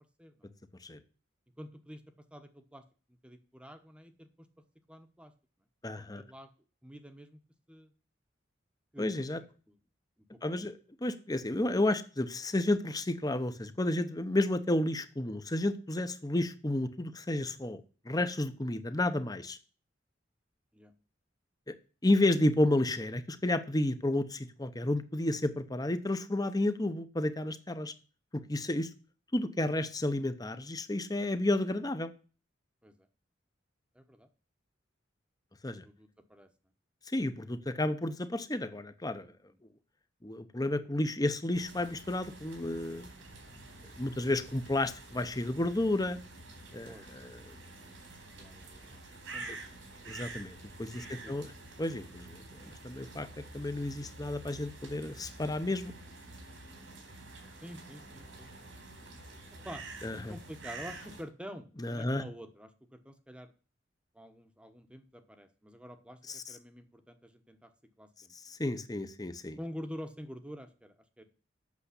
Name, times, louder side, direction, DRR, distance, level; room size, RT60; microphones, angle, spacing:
voice 1, 1.6-2.0 2.3-2.8 3.2-4.5 4.9-5.3 6.0-6.5 6.8-7.4 7.7-7.9 8.9-9.7 10.3-10.7 20.7-20.9 32.8-32.9 33.9-34.3 35.8-36.5 39.2-39.6 46.9-47.1 48.3-49.1 49.3-49.8 51.0-51.6 57.6-58.7 59.6-59.8 60.3-63.5 64.1-66.2 66.5-67.7 68.0-68.3 69.6-71.2, equal, 5° right, 8 dB, 1.0 m, -48 dB
voice 2, 5.8-6.2 9.0-9.4 10.4-10.7 11.0-17.8 18.1-19.6 21.7-21.8 22.0-27.9 28.3-28.9 29.3-32.1 35.6-35.8 37.1-39.3 40.2-43.1 43.9-46.2 46.7-47.4 50.0-51.5 51.8-52.4 52.6-53.3 53.5-55.9 60.0-60.3 61.8-62.2 66.3-66.4 68.4-69.6, left 1 dB, 20° left, 11 dB, 0.9 m, -31 dB
sound 1, 41.5-61.2, right 2 dB, 90° right, 3.9 m, -48 dB
8.5 x 6.7 x 8.3 m, 0.37 s
head